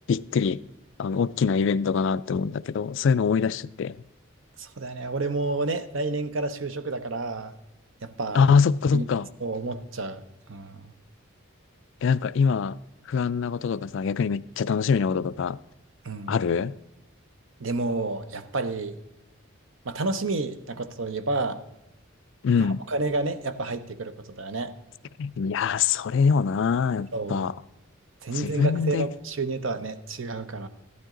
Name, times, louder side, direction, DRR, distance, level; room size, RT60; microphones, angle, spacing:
voice 1, 0.1-0.6 1.0-4.0 8.3-9.3 12.0-12.8 13.1-15.6 16.3-16.8 22.4-22.8 25.2-27.5 28.3-29.1, left 5 dB, 60° left, 0.3 m, -24 dB
voice 2, 4.6-7.5 8.0-8.6 8.9-9.1 9.4-10.2 10.5-10.9 16.0-16.3 17.6-19.0 19.8-21.6 22.6-24.7 27.1-27.5 28.2-30.7, right 3 dB, 65° right, 0.8 m, -30 dB
14.0 x 12.0 x 3.8 m
head